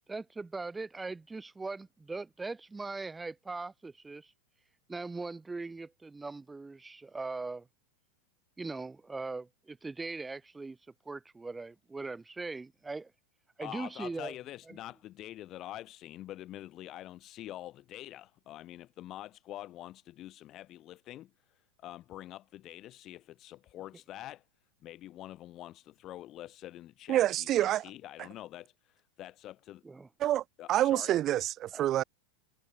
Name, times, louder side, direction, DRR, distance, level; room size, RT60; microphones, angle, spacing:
voice 1, 0.0-4.3 4.9-7.7 8.6-10.8 11.0-13.1 13.6-14.4 14.7-14.8 29.8-30.1 31.7-31.8, right 3 dB, 10° right, 4.5 m, -40 dB
voice 2, 13.6-21.3 21.8-24.4 24.8-29.8 30.6-31.2, left 14 dB, 35° left, 5.8 m, -46 dB
voice 3, 27.1-27.8 30.2-30.4 30.7-32.0, right 13 dB, 30° right, 1.6 m, -27 dB
figure-of-eight pair, 90°, 0 cm